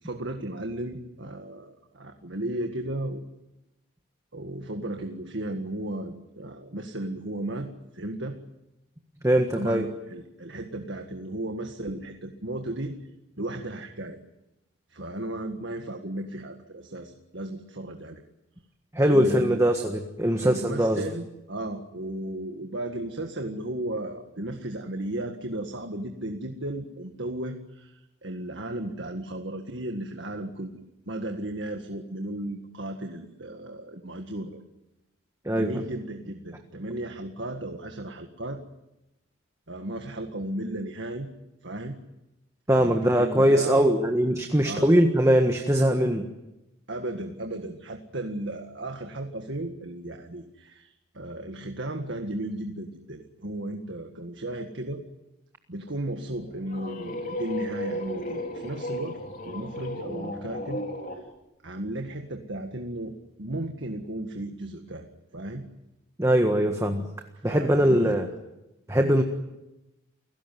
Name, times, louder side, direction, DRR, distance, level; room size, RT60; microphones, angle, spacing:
voice 1, 0.0-3.2 4.3-8.4 9.5-13.0 13.4-14.2 14.9-18.2 19.1-19.6 20.4-34.6 35.6-38.6 39.7-41.3 41.6-42.0 42.7-43.9 44.6-45.0 46.9-55.0 55.7-60.8 61.1-61.2 61.6-65.1 65.3-65.7 67.5-68.3, right 1 dB, 65° right, 5 dB, 1.9 m, -35 dB
voice 2, 9.2-9.9 18.9-21.0 35.4-35.8 42.7-46.2 66.2-67.1 67.4-68.3 68.9-69.2, equal, 15° right, 4 dB, 1.5 m, -21 dB
sound 1, 56.3-61.2, left 1 dB, 40° left, 3.7 m, -34 dB
29.5 x 17.0 x 9.4 m, 0.95 s
head